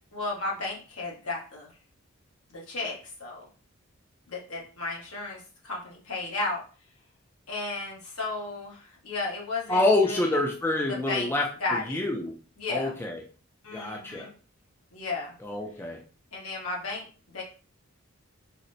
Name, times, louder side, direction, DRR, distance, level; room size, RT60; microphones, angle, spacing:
voice 1, 0.1-1.7 2.5-3.4 4.3-6.6 7.5-10.4 10.9-11.3 11.6-12.0 12.6-12.9 13.6-14.3 14.9-15.4 16.3-17.0 17.3-17.4, left 3 dB, 90° left, -3 dB, 1.2 m, -34 dB
voice 2, 9.7-12.3 12.7-13.2 13.7-14.3 15.4-16.0, left 2 dB, 10° left, 1 dB, 0.3 m, -27 dB
4.1 x 2.0 x 2.6 m, 0.39 s
head